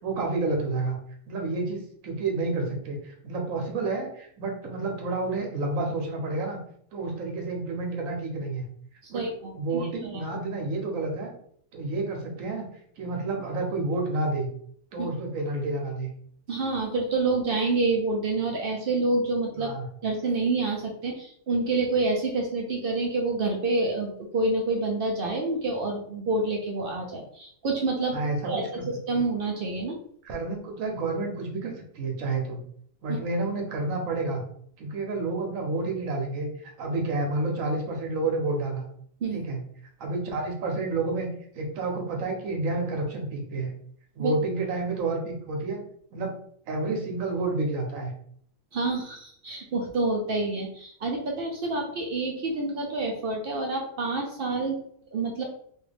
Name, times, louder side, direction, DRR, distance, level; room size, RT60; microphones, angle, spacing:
voice 1, 0.0-1.0 1.3-6.6 6.9-8.7 9.1-9.2 9.5-11.3 11.7-12.7 13.0-14.5 14.9-16.1 19.6-19.9 28.1-28.9 29.1-29.2 30.2-32.6 33.0-34.4 34.8-38.9 39.3-39.6 40.0-41.3 41.5-43.7 44.2-45.8 46.1-46.3 46.7-48.1, right 3 dB, 80° right, 2 dB, 1.2 m, -30 dB
voice 2, 9.0-9.8 10.1-10.2 16.5-19.7 20.0-28.2 28.5-28.8 29.1-29.9 33.1-33.2 39.2-39.4 44.2-44.3 48.7-54.8 55.1-55.4, right 3 dB, 60° right, 1 dB, 0.6 m, -28 dB
3.1 x 2.4 x 3.3 m, 0.64 s
omnidirectional pair, 1.4 m